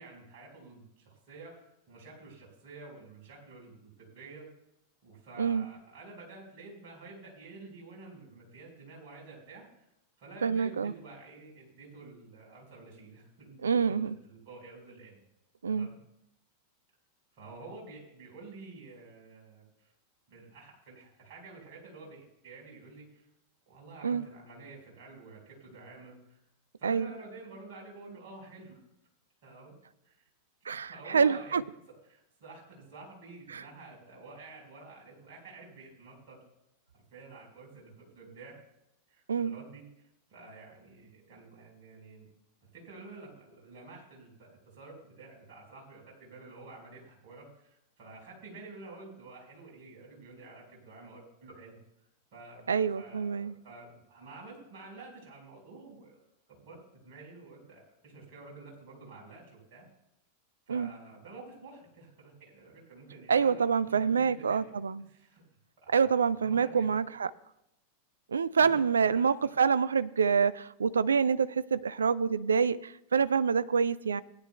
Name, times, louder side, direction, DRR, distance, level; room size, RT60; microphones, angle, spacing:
voice 1, 0.0-4.5 5.0-9.9 10.2-15.2 15.6-16.0 17.3-19.9 20.3-23.2 23.7-26.4 26.8-28.8 29.4-29.8 30.0-30.2 30.9-31.6 31.9-36.4 36.9-38.6 39.1-42.3 42.7-51.8 52.3-56.2 56.5-59.9 60.7-64.7 65.1-65.4 65.8-66.1 66.4-66.9 68.6-69.5, right 3 dB, 45° right, 0 dB, 4.3 m, -50 dB
voice 2, 10.4-10.9 13.6-14.1 15.6-15.9 24.0-24.3 26.8-27.1 30.7-31.6 33.5-33.6 39.3-39.5 52.7-53.5 60.7-60.9 63.3-65.0 65.9-67.3 68.3-74.2, right 6 dB, 70° right, 17 dB, 0.4 m, -27 dB
18.5 x 10.5 x 2.2 m, 0.83 s
figure-of-eight pair, 90°, 0 cm